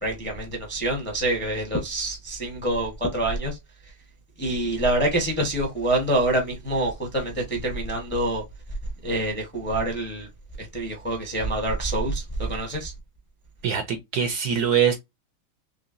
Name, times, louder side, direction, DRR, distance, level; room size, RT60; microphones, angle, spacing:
voice 1, 0.0-3.6 4.4-8.4 9.0-10.3 10.6-12.9, right 1 dB, 10° left, 0.7 m, -26 dB
voice 2, 13.6-14.9, right 8 dB, 70° right, 1.0 m, -23 dB
3.8 x 3.1 x 2.5 m
omnidirectional pair, 2.1 m